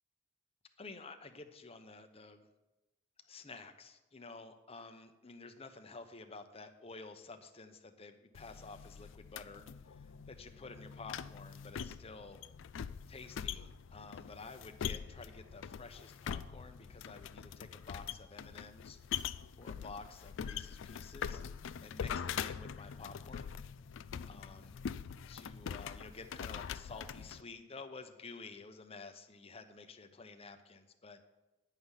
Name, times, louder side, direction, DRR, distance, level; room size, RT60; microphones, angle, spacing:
voice 1, 0.8-2.5 3.3-12.4 13.1-19.0 19.2-21.4 21.8-23.5 24.3-24.8 25.3-31.2, left 3 dB, 30° left, 7 dB, 0.8 m, -51 dB
sound 1, 8.4-27.4, left 8 dB, 60° left, 0.4 m, -43 dB
10.0 x 5.6 x 8.1 m, 1.0 s
head